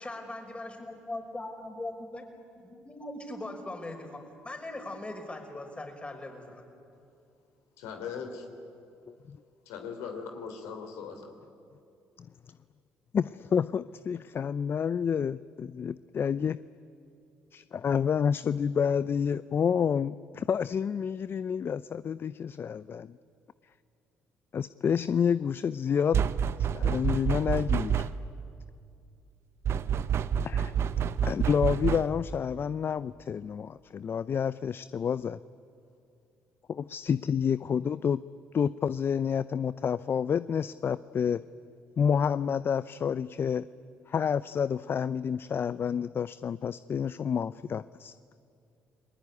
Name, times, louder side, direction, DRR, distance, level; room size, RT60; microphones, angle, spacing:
voice 1, 0.0-2.2 2.5-6.6, left 2 dB, 20° left, 5 dB, 5.7 m, -40 dB
voice 2, 7.8-8.4 9.6-11.3, left 6 dB, 80° left, 5 dB, 3.5 m, -39 dB
voice 3, 13.1-16.6 17.5-23.2 24.5-26.2 26.6-28.0 30.4-30.7 31.2-35.4 36.7-38.2 38.5-41.4 42.0-43.7 44.1-48.1, left 7 dB, 45° left, 16 dB, 0.6 m, -29 dB
sound 1, 26.1-28.4 29.6-32.3, right 8 dB, 55° right, 1.0 m, -28 dB
29.5 x 20.5 x 9.7 m, 2.6 s
hypercardioid pair, 55°, 5 cm